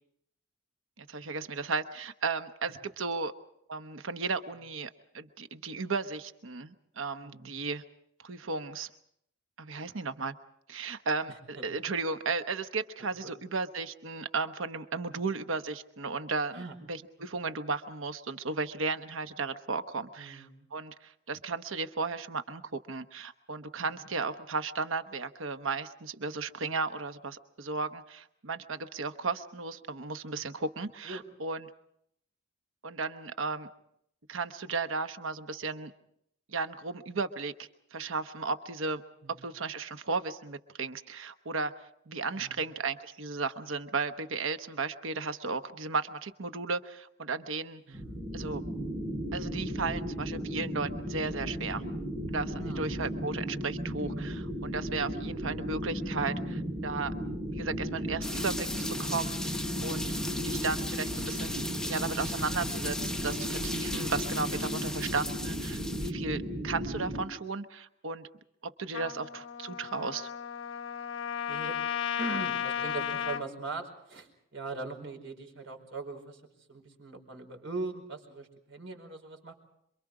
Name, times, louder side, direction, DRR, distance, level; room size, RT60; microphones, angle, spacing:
voice 1, 1.0-3.3 3.7-7.8 8.2-8.9 9.6-10.3 10.7-20.5 20.7-31.7 32.8-33.7 34.3-35.9 36.5-39.0 39.4-41.7 42.1-48.0 48.3-48.6 49.3-51.8 52.3-57.1 57.5-60.1 60.4-68.3 68.8-70.3, right 4 dB, 90° right, 9 dB, 1.0 m, -35 dB
voice 2, 7.2-7.6 11.3-11.6 13.0-13.1 16.5-16.8 17.2-17.3 20.2-20.7 23.8-24.1 31.0-31.2 39.2-39.4 42.3-42.6 47.9-48.2 52.5-53.0 69.0-69.2 71.5-71.8 72.2-76.4 76.7-79.5, right 3 dB, 70° right, 4 dB, 5.0 m, -41 dB
sound 1, 47.9-67.3, equal, 30° right, 2.2 m, -35 dB
sound 2, 58.2-66.1, left 1 dB, 5° left, 0.8 m, -37 dB
Trumpet, 68.9-73.5, left 9 dB, 75° left, 1.0 m, -34 dB
27.0 x 23.5 x 4.9 m, 0.75 s
head